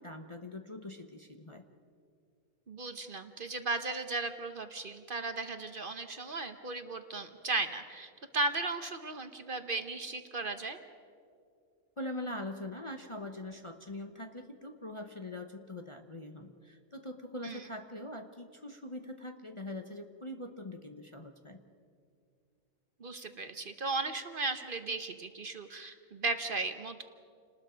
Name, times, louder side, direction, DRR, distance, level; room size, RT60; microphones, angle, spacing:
voice 1, 0.0-1.6 12.0-21.6, left 1 dB, 25° left, 5 dB, 0.8 m, -43 dB
voice 2, 2.7-10.8 17.4-17.6 23.0-27.0, right 3 dB, 45° right, 8 dB, 1.0 m, -36 dB
29.0 x 19.5 x 5.1 m, 2.3 s
omnidirectional pair, 1.4 m